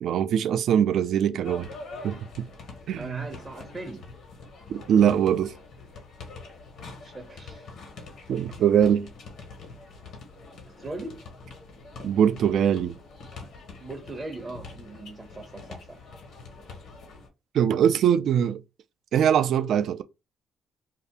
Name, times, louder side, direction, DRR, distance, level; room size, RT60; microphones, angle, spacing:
voice 1, 0.0-1.7 2.0-2.5 2.9-3.3 4.7-5.5 8.3-9.1 12.0-13.0 17.5-18.6 19.1-20.0, right 9 dB, 70° right, 0.3 m, -22 dB
sound 1, 1.4-17.3, left 3 dB, 75° left, 1.2 m, -44 dB
voice 2, 3.0-4.1 7.0-7.6 10.7-11.2 13.8-16.0, right 2 dB, 25° right, 0.6 m, -39 dB
2.7 x 2.4 x 3.4 m
cardioid pair, 90°, 0 cm